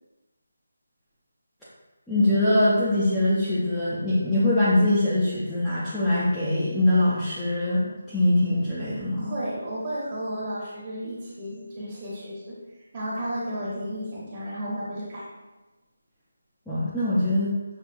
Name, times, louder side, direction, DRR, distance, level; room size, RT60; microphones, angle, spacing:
voice 1, 2.1-9.3 16.7-17.5, left 1 dB, ahead, -14 dB, 0.4 m, -23 dB
voice 2, 9.2-12.6 12.9-15.2, equal, 25° right, -7 dB, 1.0 m, -33 dB
6.2 x 2.6 x 2.5 m, 1.1 s
figure-of-eight pair, 175°, 0 cm